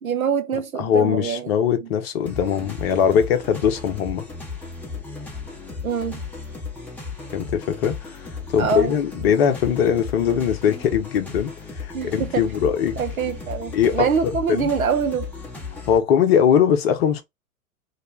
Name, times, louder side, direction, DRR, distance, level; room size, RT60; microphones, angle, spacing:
voice 1, 0.0-1.5 1.8-1.9 5.8-6.2 8.6-8.9 11.9-12.5 13.0-15.3, right 6 dB, 80° right, 0.6 m, -24 dB
voice 2, 0.8-4.2 7.3-8.0 8.5-13.0 13.7-14.1 14.5-14.7 15.9-17.2, left 8 dB, 45° left, 0.7 m, -21 dB
sound 1, 2.3-16.0, left 4 dB, 5° left, 0.7 m, -35 dB
2.4 x 2.1 x 3.1 m
figure-of-eight pair, 100°, 41 cm